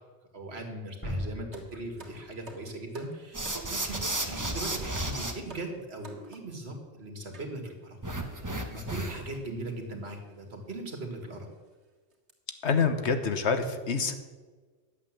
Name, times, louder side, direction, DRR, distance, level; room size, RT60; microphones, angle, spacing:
voice 1, 0.3-8.0 8.4-11.5, right 2 dB, 70° right, 3 dB, 2.2 m, -39 dB
sound 1, 1.0-3.0 3.3-3.5, equal, 10° left, 4.4 m, -39 dB
sound 2, 1.5-6.6 7.3-7.5 8.2-8.3 8.5-8.7 9.7-9.9 10.3-10.4 11.0-11.1 11.5-11.7 12.1-12.3, right 2 dB, 85° right, 2.2 m, -50 dB
sound 3, 3.3-5.3 8.0-9.4, right 1 dB, 20° right, 1.1 m, -33 dB
voice 2, 12.6-14.1, left 5 dB, 90° left, 8 dB, 1.4 m, -26 dB
11.0 x 8.3 x 7.4 m, 1.4 s
omnidirectional pair, 1.1 m